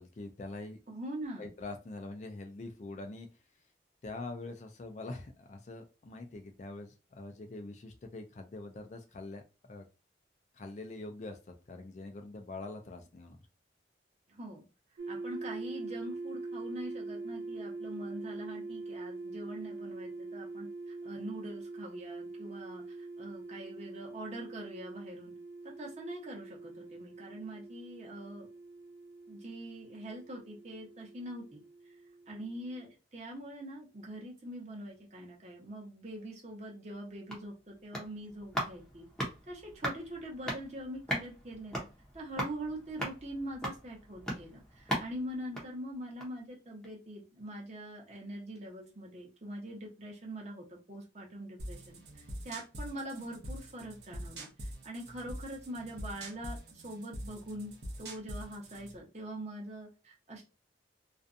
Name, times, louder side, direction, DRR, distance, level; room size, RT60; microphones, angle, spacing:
voice 1, 0.0-0.8 1.4-3.3 4.0-9.4 9.7-9.9 10.5-13.4, left 2 dB, 40° left, 5 dB, 0.3 m, -44 dB
voice 2, 0.9-1.5 14.3-14.6 15.1-25.3 25.6-28.5 29.3-31.9 32.3-39.1 39.5-41.9 42.1-57.7 58.0-60.4, right 1 dB, 40° right, -2 dB, 0.9 m, -43 dB
sound 1, 15.0-32.9, right 3 dB, 90° right, 0.4 m, -44 dB
sound 2, 37.1-46.5 46.8-46.9, equal, 5° left, 0.6 m, -40 dB
sound 3, 51.6-59.0, right 1 dB, 70° right, 0.7 m, -44 dB
2.5 x 2.2 x 2.5 m, 0.31 s
head